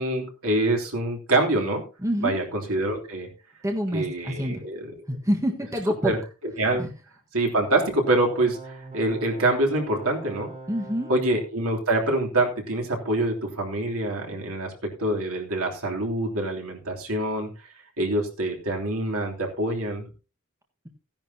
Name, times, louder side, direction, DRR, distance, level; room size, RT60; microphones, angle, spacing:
voice 1, 0.0-1.8 2.2-3.3 3.9-4.9 6.0-6.2 6.6-6.8 7.3-10.5 11.1-17.5 18.0-20.0, right 2 dB, 70° right, 1 dB, 3.1 m, -25 dB
voice 2, 2.0-2.4 3.6-4.6 5.1-6.1 6.8-6.9 10.7-11.1, equal, 15° right, 2 dB, 1.5 m, -26 dB
sound 1, 7.6-11.5, right 3 dB, 30° right, 3.1 m, -42 dB
16.0 x 10.5 x 2.8 m, 0.33 s
head